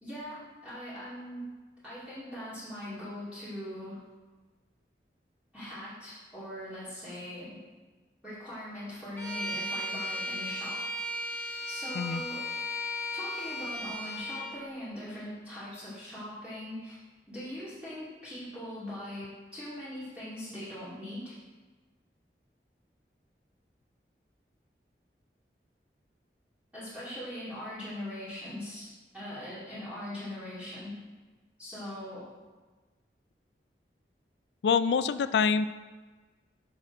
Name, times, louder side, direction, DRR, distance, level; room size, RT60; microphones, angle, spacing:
voice 1, 0.0-1.5 1.8-4.0 5.5-7.6 8.2-10.8 11.7-12.5 13.1-17.0 17.3-21.4 26.7-30.9 31.6-32.3, left 1 dB, 5° right, -12 dB, 2.2 m, -41 dB
Bowed string instrument, 9.2-14.6, left 1 dB, 10° left, 1.6 m, -35 dB
voice 2, 34.6-35.6, left 6 dB, 80° left, 13 dB, 0.3 m, -25 dB
7.5 x 6.1 x 3.8 m, 1.3 s
head